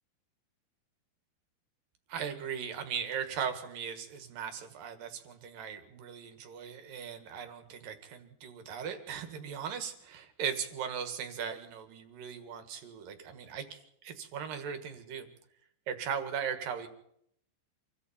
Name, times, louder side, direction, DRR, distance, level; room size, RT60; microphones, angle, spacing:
voice 1, 2.1-15.3 15.9-16.9, right 7 dB, 60° right, 7 dB, 3.0 m, -38 dB
26.5 x 23.5 x 4.3 m, 0.72 s
omnidirectional pair, 5.4 m